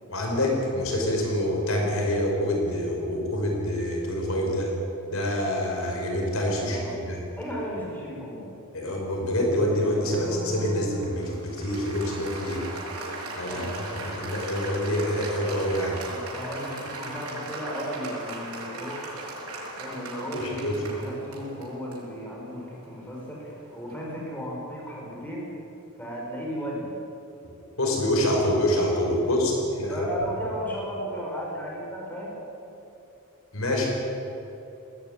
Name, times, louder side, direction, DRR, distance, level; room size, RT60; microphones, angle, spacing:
voice 1, 0.1-4.7 5.1-7.2 8.7-12.6 13.4-13.6 14.0-16.0 20.6-20.7 27.8-30.1 33.5-33.9, left 1 dB, 70° left, 0 dB, 5.1 m, -26 dB
voice 2, 6.6-7.1 7.4-8.5 13.5-14.0 16.0-19.1 19.8-25.5 26.0-27.0 29.2-29.4 29.9-32.4, equal, 10° left, -3 dB, 5.6 m, -35 dB
Applause, 9.8-24.2, right 1 dB, 85° right, 6.4 m, -38 dB
19.5 x 18.0 x 9.6 m, 2.9 s
head